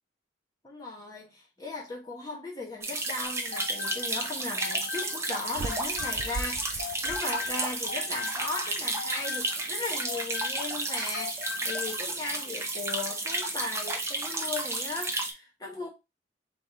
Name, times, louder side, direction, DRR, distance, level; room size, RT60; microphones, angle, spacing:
voice 1, 0.6-15.9, left 3 dB, 20° left, 1.1 m, -37 dB
sound 1, 2.8-15.3, right 2 dB, 15° right, 0.6 m, -32 dB
sound 2, 3.2-6.5 6.8-10.9 11.1-12.0, left 7 dB, 50° left, 0.5 m, -40 dB
sound 3, 5.5-7.9, right 3 dB, 85° right, 0.5 m, -39 dB
3.5 x 3.2 x 4.2 m
head